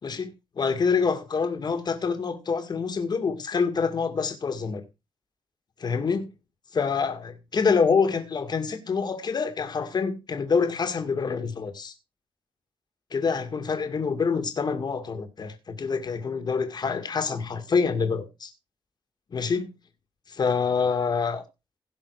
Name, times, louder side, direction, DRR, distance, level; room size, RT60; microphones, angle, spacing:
voice 1, 0.0-4.8 5.8-6.3 6.7-11.9 13.1-18.5 19.3-19.7 20.3-21.4, left 5 dB, 45° left, 2.1 m, -26 dB
17.0 x 5.9 x 4.8 m
wide cardioid pair, 130°, 9 cm